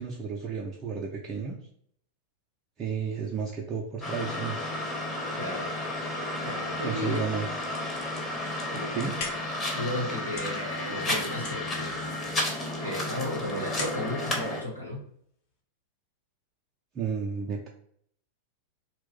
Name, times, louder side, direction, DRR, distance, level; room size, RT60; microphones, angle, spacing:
voice 1, 0.0-1.6 2.8-4.7 6.8-7.5 8.9-9.1 16.9-17.7, right 6 dB, 25° right, -3 dB, 0.4 m, -32 dB
sound 1, 4.0-14.6, left 1 dB, 15° left, 0.7 m, -32 dB
voice 2, 5.4-5.7 6.4-7.2 8.7-9.0 9.7-12.1 12.4-15.0, left 1 dB, 85° left, -3 dB, 0.8 m, -34 dB
sound 2, 8.8-15.6, left 4 dB, 50° left, 0.7 m, -43 dB
2.4 x 2.0 x 3.6 m, 0.66 s
figure-of-eight pair, 90°, 0 cm